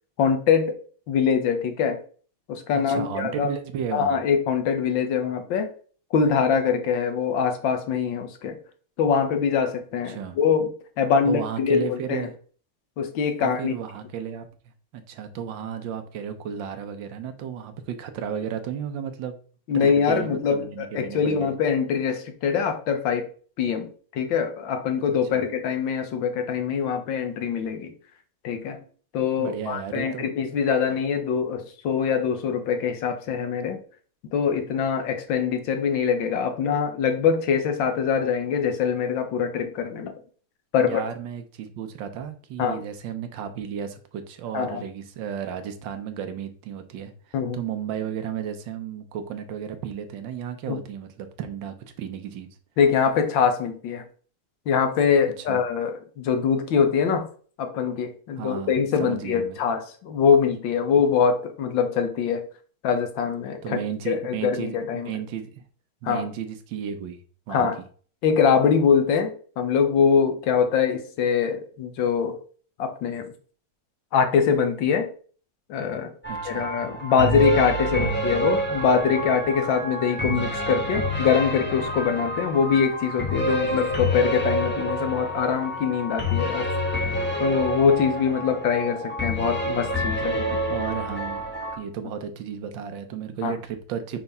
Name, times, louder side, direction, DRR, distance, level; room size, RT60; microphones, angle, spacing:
voice 1, 0.2-0.8 1.1-2.0 2.5-3.5 3.9-5.7 6.1-8.6 9.0-10.7 11.0-12.3 13.0-13.7 19.7-23.3 23.6-27.9 28.4-28.8 29.1-33.8 34.3-40.1 40.7-41.0 42.6-42.8 44.5-44.8 47.3-47.6 50.7-50.8 52.8-54.0 54.7-57.3 57.6-62.4 62.8-63.8 64.1-65.1 66.0-66.3 67.5-67.8 68.2-72.4 72.8-73.2 74.1-75.1 75.7-76.1 76.5-86.7 87.4-90.6 93.4-93.5, left 6 dB, 65° left, 7 dB, 1.6 m, -23 dB
voice 2, 2.7-4.2 10.1-10.4 11.2-12.3 13.4-14.5 14.9-19.4 19.7-21.5 25.1-25.4 29.4-30.3 40.8-52.5 55.5-55.6 58.4-58.7 59.0-59.6 63.6-65.6 66.0-67.2 67.5-67.7 76.3-76.7 77.9-78.1 90.7-94.2, right 8 dB, 65° right, 8 dB, 1.4 m, -33 dB
sound 1, 76.2-91.8, equal, 10° left, 0.7 m, -28 dB
5.9 x 3.4 x 5.4 m, 0.43 s
omnidirectional pair, 2.4 m